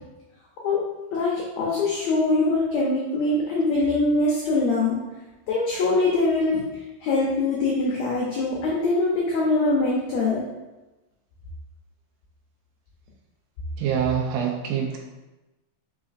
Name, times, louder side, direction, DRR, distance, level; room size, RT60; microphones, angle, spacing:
voice 1, 0.6-5.0 5.5-10.4, left 2 dB, 85° left, -4 dB, 1.5 m, -23 dB
voice 2, 13.8-15.0, right 8 dB, 75° right, 0 dB, 2.0 m, -25 dB
5.1 x 3.8 x 2.5 m, 1.0 s
omnidirectional pair, 4.0 m